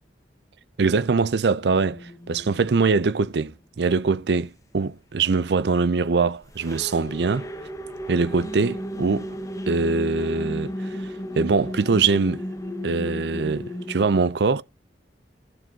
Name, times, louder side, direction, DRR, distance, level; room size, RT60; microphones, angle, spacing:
voice 1, 0.8-7.5 8.1-9.3 9.7-11.0 11.3-12.4 12.8-14.6, right 4 dB, 65° right, 0.5 m, -23 dB
sound 1, 1.5-3.4 6.4-14.0, equal, 20° left, 1.1 m, -34 dB
14.5 x 7.5 x 2.8 m
head